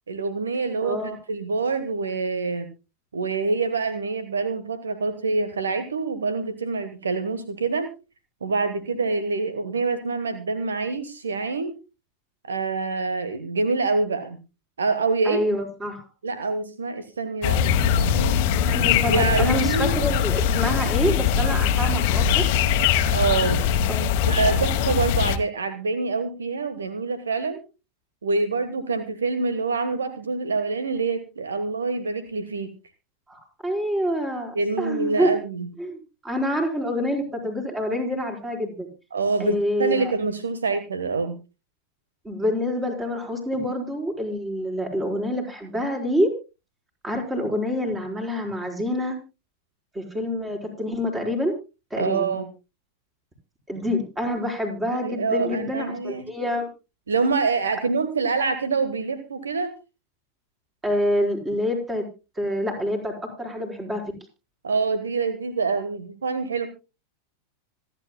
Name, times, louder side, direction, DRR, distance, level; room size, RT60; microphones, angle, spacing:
voice 1, 0.1-2.7 3.1-7.9 8.4-11.7 12.5-14.4 14.8-15.4 16.2-18.4 19.1-19.9 23.1-23.6 24.3-27.6 28.2-32.7 34.5-35.7 39.1-41.4 52.0-52.5 55.0-56.2 57.1-59.7 64.6-66.7, right 4 dB, 70° right, 11 dB, 1.3 m, -26 dB
voice 2, 0.8-1.2 15.2-16.0 18.6-22.4 23.9-24.1 33.3-35.3 35.8-38.9 39.4-40.1 42.2-46.3 47.0-49.2 49.9-51.5 51.9-52.4 53.7-56.7 60.8-62.0 62.4-63.1 63.4-64.0, equal, 15° right, 1 dB, 4.5 m, -27 dB
sound 1, 17.4-25.4, left 8 dB, 45° left, 1.2 m, -21 dB
26.0 x 9.7 x 2.2 m, 0.29 s
figure-of-eight pair, 90°, 0 cm